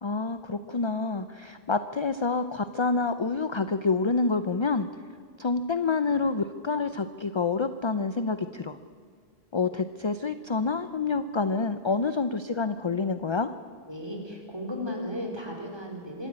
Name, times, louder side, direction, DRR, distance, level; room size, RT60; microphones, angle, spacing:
voice 1, 0.0-4.9 5.4-8.8 9.5-13.5, left 4 dB, 35° left, 11 dB, 0.6 m, -27 dB
voice 2, 13.9-16.3, left 1 dB, 25° right, 1 dB, 4.2 m, -35 dB
26.0 x 12.5 x 8.8 m, 2.1 s
omnidirectional pair, 1.1 m